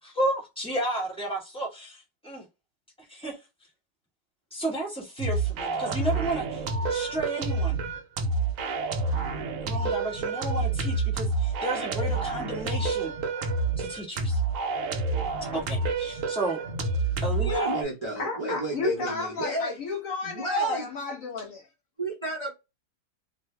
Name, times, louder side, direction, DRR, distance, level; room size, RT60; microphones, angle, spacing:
voice 1, 0.0-2.4 3.1-3.4 4.5-6.6 6.9-7.8 9.6-13.1 13.8-14.4 15.5-16.6 17.2-17.7, right 2 dB, 5° left, 1.4 m, -32 dB
sound 1, 5.2-17.8, right 3 dB, 65° right, 0.9 m, -28 dB
voice 2, 17.5-19.8 20.2-20.9 22.0-22.5, right 2 dB, 30° right, 0.5 m, -31 dB
voice 3, 18.2-21.6, left 3 dB, 60° left, 1.0 m, -32 dB
2.7 x 2.4 x 3.2 m
omnidirectional pair, 1.8 m